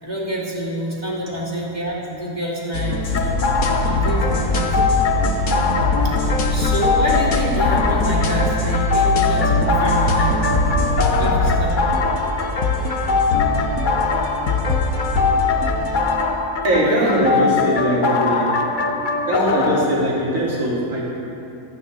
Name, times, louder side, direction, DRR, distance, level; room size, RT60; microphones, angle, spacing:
voice 1, 0.0-3.0 3.8-4.8 6.0-10.7 11.2-11.8 16.8-17.2, right 1 dB, 25° right, -5 dB, 3.0 m, -27 dB
sound 1, 2.7-16.2, left 2 dB, 70° left, 1.6 m, -22 dB
sound 2, 3.1-19.8, left 4 dB, 40° left, 0.7 m, -22 dB
voice 2, 16.6-18.5 19.3-21.0, equal, 55° right, -6 dB, 3.2 m, -20 dB
26.5 x 9.1 x 4.2 m, 2.7 s
omnidirectional pair, 1.7 m